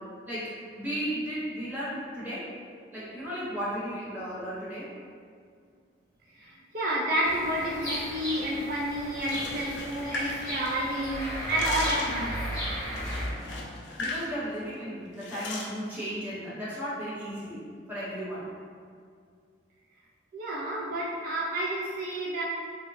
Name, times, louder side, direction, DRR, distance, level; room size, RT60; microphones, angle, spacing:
voice 1, 0.2-2.5 2.9-4.9 14.0-17.6 17.9-18.5, equal, 10° right, -10 dB, 0.8 m, -35 dB
voice 2, 6.4-12.4 20.3-22.4, right 1 dB, 55° right, -5 dB, 0.3 m, -30 dB
sound 1, 7.2-13.3, equal, 20° left, 0.8 m, -35 dB
sound 2, 9.2-11.0 11.3-12.2 13.0-14.3 14.5-14.7 15.2-15.7, left 2 dB, 90° left, 0.4 m, -36 dB
2.7 x 2.0 x 3.0 m, 2.2 s
head